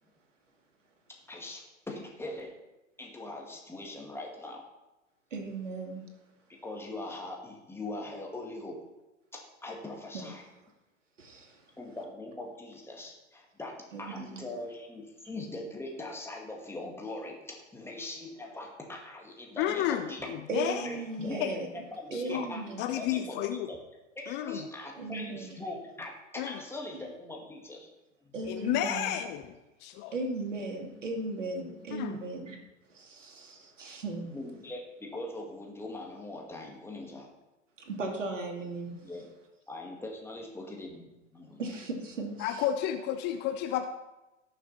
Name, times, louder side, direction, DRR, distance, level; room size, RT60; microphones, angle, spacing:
voice 1, 1.1-2.5 3.0-4.6 6.5-8.9 9.3-10.4 11.8-20.3 20.8-21.5 21.7-22.6 22.9-23.4 23.7-23.8 24.1-27.9 34.3-37.3 39.0-39.3 39.7-41.6, left 2 dB, 5° left, 0 dB, 2.0 m, -41 dB
voice 2, 5.3-6.0 11.2-11.6 13.9-14.4 20.5-21.7 22.1-22.8 25.0-25.5 28.3-29.2 30.1-32.6 32.9-34.4 37.8-39.1 41.6-42.6, right 3 dB, 70° right, 2 dB, 2.4 m, -37 dB
voice 3, 19.6-20.1 20.5-20.9 21.4-21.5 22.1-22.5 22.8-23.7 24.3-24.6 26.4-26.5 28.5-29.4 29.8-30.1 31.9-32.2 42.4-43.9, left 11 dB, 30° left, 8 dB, 0.7 m, -31 dB
18.5 x 6.8 x 4.2 m, 1.0 s
figure-of-eight pair, 95°, 38 cm